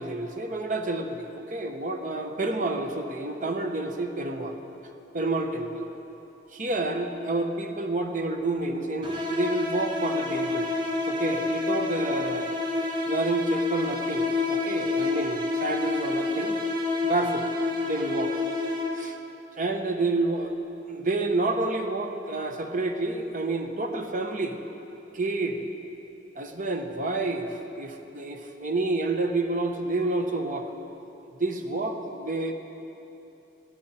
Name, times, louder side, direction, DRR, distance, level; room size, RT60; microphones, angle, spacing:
voice 1, 0.0-4.6 5.1-5.9 6.5-10.7 11.1-12.5 13.1-16.6 17.0-17.5 17.8-18.4 18.9-19.2 19.6-20.6 20.9-24.6 25.1-25.6 26.4-30.7 31.4-32.5, right 2 dB, 45° right, 5 dB, 1.1 m, -29 dB
sound 1, 9.0-19.2, left 3 dB, 25° right, 1.3 m, -28 dB
21.0 x 14.0 x 4.4 m, 3.0 s
head